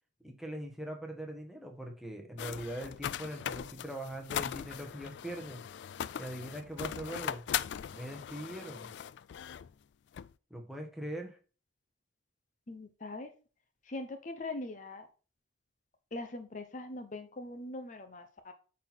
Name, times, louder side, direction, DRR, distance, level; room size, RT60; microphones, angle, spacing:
voice 1, 0.2-5.6 6.2-7.4 7.9-8.9 10.5-11.4, right 1 dB, ahead, 2 dB, 1.2 m, -41 dB
sound 1, 2.4-9.7 10.1-10.3, left 9 dB, 70° left, 0.3 m, -39 dB
voice 2, 12.7-13.3 13.8-15.1 16.1-18.5, left 2 dB, 40° left, 8 dB, 0.7 m, -41 dB
8.7 x 4.2 x 4.4 m, 0.35 s
head